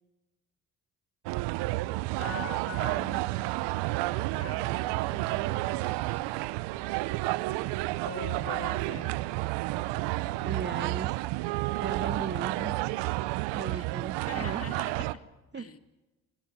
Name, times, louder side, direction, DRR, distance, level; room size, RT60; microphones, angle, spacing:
sound 1, 1.3-15.1, right 19 dB, 85° right, 0.8 m, -31 dB
voice 1, 2.2-3.4 4.1-6.5 8.1-9.3 13.7-13.8 14.3-15.3 15.5-15.8, left 5 dB, 35° left, 10 dB, 2.3 m, -43 dB
voice 2, 10.3-11.2 11.8-12.9 13.5-14.7 15.5-15.7, right 5 dB, 25° right, 16 dB, 0.9 m, -37 dB
30.0 x 19.5 x 9.6 m, 1.1 s
hypercardioid pair, 55°, 41 cm